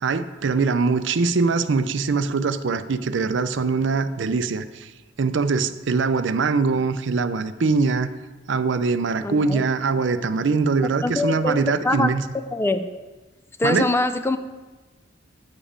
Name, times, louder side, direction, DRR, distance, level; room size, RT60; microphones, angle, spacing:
voice 1, 0.0-4.9 5.2-8.1 8.5-12.2 13.6-13.8, right 4 dB, 65° right, 12 dB, 0.5 m, -22 dB
voice 2, 9.2-9.6 11.0-11.6 11.8-12.1 12.5-12.8 13.6-14.4, left 2 dB, 10° left, 9 dB, 0.4 m, -23 dB
9.9 x 7.2 x 5.1 m, 1.2 s
head